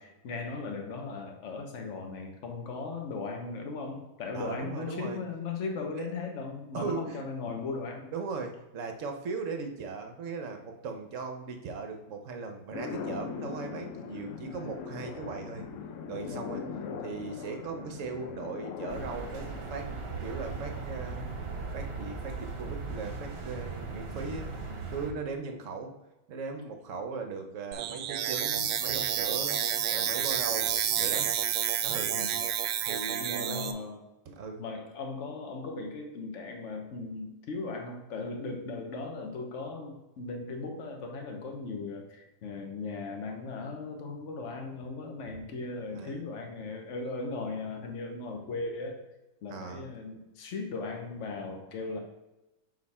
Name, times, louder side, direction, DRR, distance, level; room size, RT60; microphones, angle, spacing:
voice 1, 0.0-8.1 16.7-16.9 32.1-32.4 33.2-34.0 34.6-49.0 49.4-52.0, left 3 dB, 50° left, 3 dB, 1.1 m, -37 dB
voice 2, 4.3-5.2 6.0-6.1 6.7-7.3 8.1-15.7 16.1-16.7 17.0-19.9 20.2-21.4 21.7-24.6 24.9-26.0 26.3-29.6 29.9-31.4 31.8-32.2 32.8-33.7 34.3-34.6 45.9-46.2 49.5-49.9, right 4 dB, 55° right, 5 dB, 1.0 m, -38 dB
sound 1, 12.7-23.1, left 6 dB, 70° left, 0.7 m, -41 dB
sound 2, 18.9-25.1, right 4 dB, 40° right, 1.1 m, -38 dB
sound 3, 27.7-33.7, right 10 dB, 75° right, 1.2 m, -30 dB
6.6 x 4.3 x 4.2 m, 1.0 s
omnidirectional pair, 1.9 m